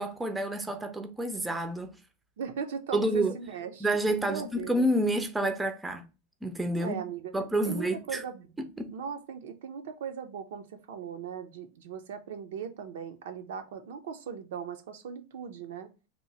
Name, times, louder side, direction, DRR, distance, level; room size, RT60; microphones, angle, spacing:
voice 1, 0.0-1.9 2.9-3.3 3.8-6.0 6.4-7.0 7.3-8.2 8.6-8.9, right 1 dB, 10° right, 0.5 m, -29 dB
voice 2, 2.4-3.9 4.2-4.8 6.8-7.3 7.6-8.5 8.9-15.9, right 7 dB, 75° right, 0.5 m, -38 dB
2.9 x 2.0 x 3.9 m
supercardioid pair, 125°, 0 cm